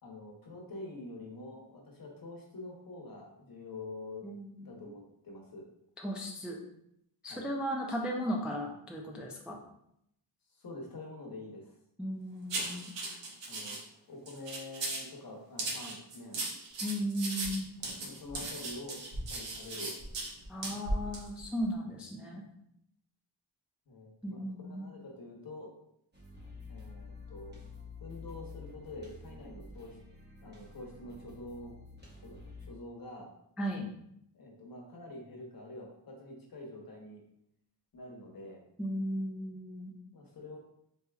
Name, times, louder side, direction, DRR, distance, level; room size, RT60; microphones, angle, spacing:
voice 1, 0.0-4.3 4.6-5.7 7.3-7.5 10.5-11.7 13.5-13.8 14.1-16.4 17.8-19.9 20.9-21.1 23.9-25.7 26.7-27.6 28.0-30.0 30.4-31.7 32.2-33.3 34.3-37.2 37.9-38.6 40.1-40.6, left 2 dB, 55° left, 0 dB, 1.0 m, -46 dB
voice 2, 4.2-4.7 6.0-6.6 7.2-9.6 12.0-12.9 16.8-17.7 20.5-22.4 24.2-24.9 33.6-33.9 38.8-40.0, equal, 5° right, -1 dB, 0.4 m, -36 dB
sound 1, 12.5-13.8 14.3-15.1 15.6-20.3 20.6-20.8 21.1-21.3, right 3 dB, 85° right, 0.8 m, -38 dB
sound 2, 16.7-17.0 17.4-18.8 19.1-20.5 20.8-21.7, equal, 55° right, 1.4 m, -40 dB
sound 3, 26.1-32.7, left 3 dB, 25° right, 0.9 m, -49 dB
4.5 x 2.8 x 2.3 m, 0.75 s
wide cardioid pair, 105°, 43 cm